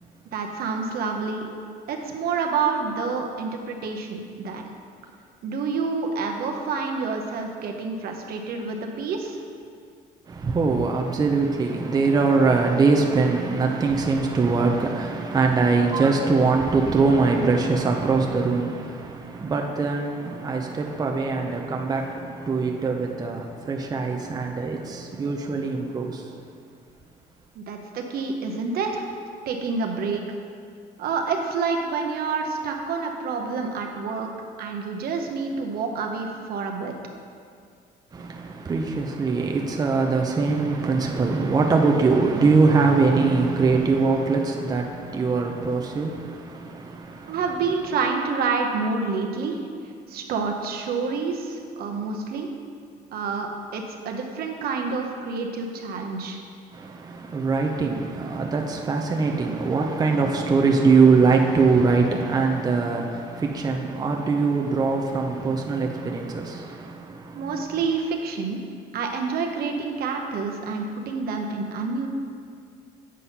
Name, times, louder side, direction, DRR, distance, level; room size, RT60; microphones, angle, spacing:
voice 1, 0.3-1.5 1.9-4.6 5.4-9.4 27.5-29.0 29.5-30.2 31.0-34.3 34.6-37.0 47.3-49.6 50.1-52.5 53.1-56.4 67.3-68.6 68.9-72.1, right 4 dB, 65° right, 0.8 m, -28 dB
voice 2, 10.3-26.2 38.1-47.4 56.7-67.6, right 4 dB, 25° right, 0.6 m, -22 dB
7.5 x 4.1 x 5.5 m
cardioid pair, 110°, 17 cm